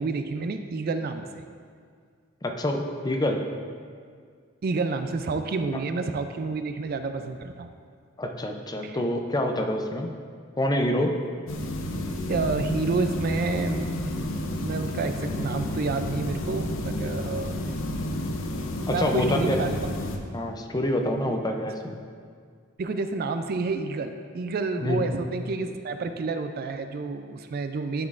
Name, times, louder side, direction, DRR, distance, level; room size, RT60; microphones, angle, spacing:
voice 1, 0.0-1.4 4.6-7.7 8.8-9.0 12.3-13.9 14.6-17.6 18.9-19.9 21.2-21.4 22.8-28.1, right 4 dB, 50° right, 8 dB, 0.4 m, -29 dB
voice 2, 2.4-3.4 8.2-10.1 10.6-11.1 18.9-19.6 20.3-22.0 24.8-25.0, left 1 dB, 20° left, 4 dB, 0.5 m, -26 dB
sound 1, 11.5-20.2, left 1 dB, 70° left, 0.6 m, -31 dB
10.5 x 6.0 x 2.5 m, 2.1 s
head